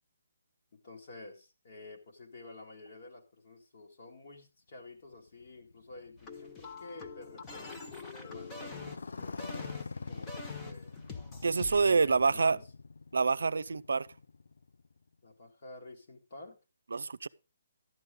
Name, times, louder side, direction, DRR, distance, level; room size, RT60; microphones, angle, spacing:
voice 1, 0.7-11.0 11.7-12.7 15.2-16.6, left 2 dB, 45° left, 2.0 m, -50 dB
Motorcycle, 5.1-15.1, left 4 dB, 80° left, 0.5 m, -46 dB
sound 1, 6.2-11.9, left 4 dB, 10° left, 0.8 m, -46 dB
voice 2, 11.4-12.6 13.1-14.1 16.9-17.3, right 4 dB, 80° right, 0.4 m, -27 dB
12.0 x 8.1 x 3.7 m
hypercardioid pair, 170°, 0 cm